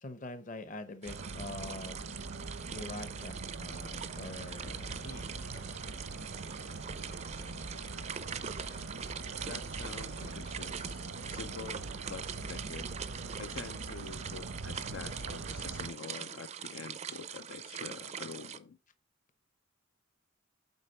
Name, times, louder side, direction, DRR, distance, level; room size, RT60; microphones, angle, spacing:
voice 1, 0.0-2.0 2.7-5.2 8.6-9.2, left 2 dB, 40° left, 0.8 m, -45 dB
sound 1, 1.0-18.6, right 7 dB, 35° right, 0.4 m, -43 dB
sound 2, 1.1-15.9, right 2 dB, 80° right, 0.8 m, -43 dB
sound 3, 4.0-10.5, left 4 dB, 85° left, 2.6 m, -59 dB
voice 2, 9.5-12.9 13.4-18.8, left 5 dB, 70° left, 0.4 m, -46 dB
8.2 x 4.3 x 4.4 m
head